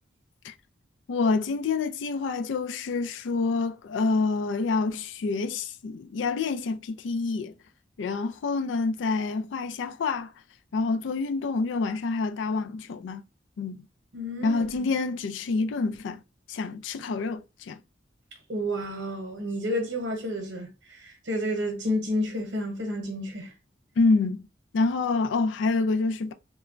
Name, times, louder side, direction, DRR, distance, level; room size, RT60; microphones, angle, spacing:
voice 1, 1.1-7.5 8.0-10.3 10.7-13.2 13.6-13.8 14.4-16.2 16.5-17.8 24.0-24.4 24.7-26.3, left 3 dB, 85° left, 0.4 m, -27 dB
voice 2, 14.1-14.7 18.5-23.5, equal, 70° right, 0.8 m, -30 dB
3.0 x 2.2 x 2.4 m
head